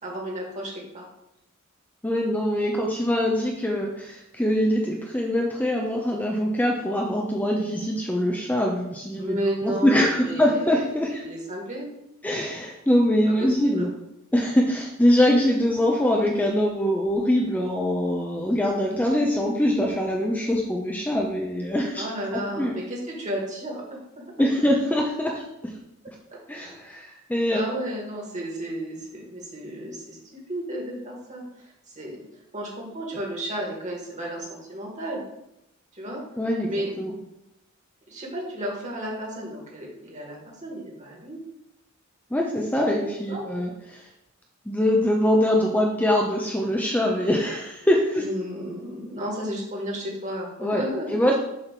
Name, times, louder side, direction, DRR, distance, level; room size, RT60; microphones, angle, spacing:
voice 1, 0.0-1.1 9.2-10.8 11.2-11.9 13.4-13.9 22.0-24.3 26.6-26.8 27.5-30.2 30.5-31.4 31.9-32.2 32.5-35.2 35.9-36.2 36.6-36.9 38.1-41.4 43.3-43.4 48.2-51.2, right 1 dB, 35° right, -3 dB, 1.9 m, -33 dB
voice 2, 2.0-9.4 9.6-11.3 12.2-13.9 14.3-22.0 22.3-22.8 24.4-25.7 26.5-27.8 36.4-37.1 42.3-44.0 44.7-48.2 50.6-51.3, left 1 dB, 10° left, 0 dB, 0.6 m, -23 dB
6.6 x 3.0 x 5.8 m, 0.85 s
head